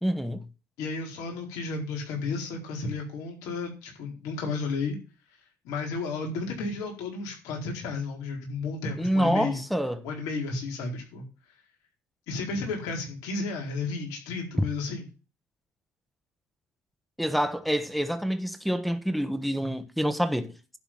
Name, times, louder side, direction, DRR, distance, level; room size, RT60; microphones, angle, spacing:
voice 1, 0.0-0.5 9.0-10.0 17.2-20.5, equal, ahead, 1.3 m, -27 dB
voice 2, 0.8-5.0 5.6-9.6 10.0-11.3 12.3-15.0, left 4 dB, 85° left, 4.4 m, -33 dB
11.5 x 4.6 x 7.4 m
supercardioid pair, 80°, 6 cm